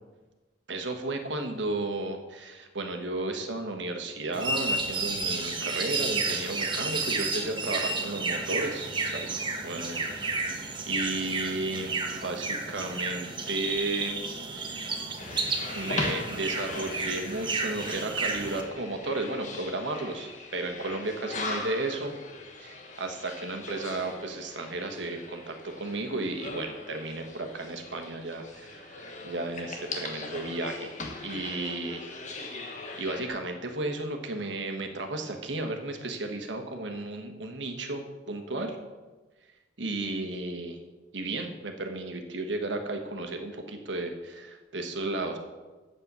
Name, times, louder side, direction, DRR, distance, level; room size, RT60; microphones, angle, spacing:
voice 1, 0.7-9.4 9.6-10.4 10.8-14.2 14.5-14.9 15.7-22.2 22.6-30.9 31.2-32.1 32.5-32.7 33.0-38.8 39.8-40.8 41.1-45.4, right 2 dB, 80° right, 4 dB, 1.3 m, -34 dB
sound 1, 4.3-18.6, right 3 dB, 25° right, 1.1 m, -32 dB
sound 2, 15.2-33.3, left 3 dB, 45° left, 1.3 m, -40 dB
7.7 x 7.6 x 6.8 m, 1.3 s
head